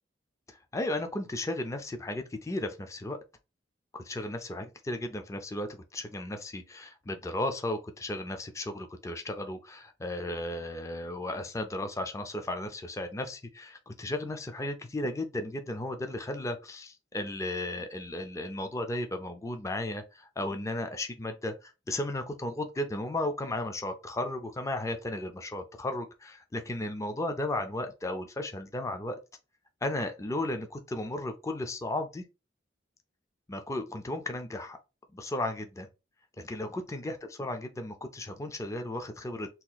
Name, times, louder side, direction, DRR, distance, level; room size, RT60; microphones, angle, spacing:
voice 1, 0.5-3.2 3.9-29.2 29.8-32.2 33.5-34.8 35.1-35.9 36.4-39.5, left 1 dB, 15° left, 0.4 m, -35 dB
2.8 x 2.4 x 3.9 m
head